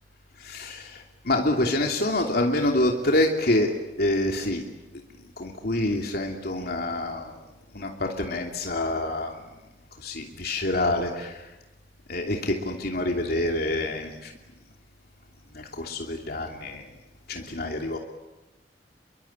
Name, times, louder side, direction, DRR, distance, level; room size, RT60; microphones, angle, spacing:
voice 1, 0.4-1.0 1.2-3.7 4.0-4.6 5.4-7.3 7.7-9.3 10.0-11.4 12.1-14.3 15.5-16.8 17.3-18.0, left 1 dB, 60° left, 2 dB, 2.8 m, -26 dB
29.0 x 23.5 x 8.8 m, 1.0 s
head